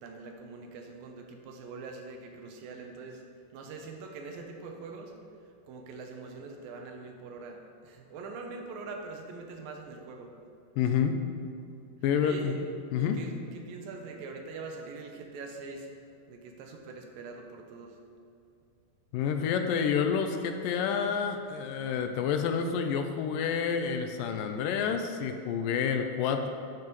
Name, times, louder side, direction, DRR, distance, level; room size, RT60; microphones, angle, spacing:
voice 1, 0.0-3.2 3.5-5.1 5.7-10.3 12.2-15.9 16.3-18.0, right 3 dB, 80° right, 2 dB, 2.6 m, -43 dB
voice 2, 10.8-11.2 12.0-12.5 12.9-13.2 19.1-26.5, left 7 dB, 80° left, 6 dB, 2.1 m, -28 dB
10.5 x 9.6 x 3.1 m, 2.4 s
omnidirectional pair, 4.2 m